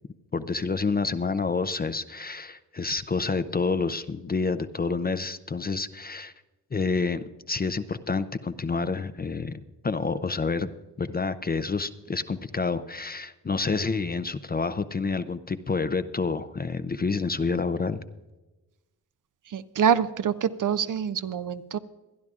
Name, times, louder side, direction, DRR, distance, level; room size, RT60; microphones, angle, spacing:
voice 1, 0.3-6.3 6.7-9.6 9.8-10.7 11.0-18.0, left 4 dB, 25° left, 12 dB, 0.5 m, -28 dB
voice 2, 19.5-21.8, right 8 dB, 50° right, 13 dB, 0.6 m, -25 dB
23.0 x 10.5 x 2.4 m, 1.1 s
cardioid pair, 70°, 42 cm